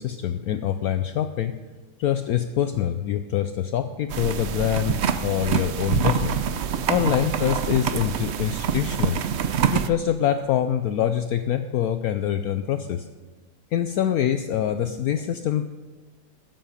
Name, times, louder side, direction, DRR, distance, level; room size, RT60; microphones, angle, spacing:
voice 1, 0.0-1.6 2.0-6.4 6.9-9.2 9.7-13.1 13.7-15.7, left 10 dB, 70° left, 9 dB, 0.9 m, -25 dB
sound 1, 4.1-9.9, right 8 dB, 65° right, 0.7 m, -25 dB
20.5 x 7.8 x 5.1 m, 1.3 s
omnidirectional pair, 1.8 m